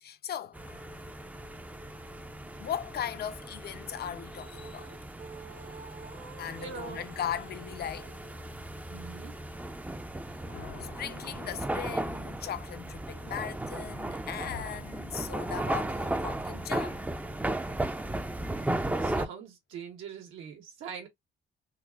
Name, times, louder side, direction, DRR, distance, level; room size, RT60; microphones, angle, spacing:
voice 1, 0.0-0.9 2.6-5.0 6.4-8.1 10.8-17.0, left 10 dB, 55° left, 0.5 m, -38 dB
sound 1, 0.5-19.3, right 1 dB, 10° right, 0.4 m, -36 dB
sound 2, 4.0-8.5, right 6 dB, 40° right, 0.9 m, -51 dB
voice 2, 6.6-7.1 8.9-9.3 19.0-21.1, right 7 dB, 90° right, 1.4 m, -43 dB
sound 3, 10.1-12.7, left 6 dB, 80° left, 0.9 m, -50 dB
3.9 x 2.5 x 2.3 m
cardioid pair, 90°, 20 cm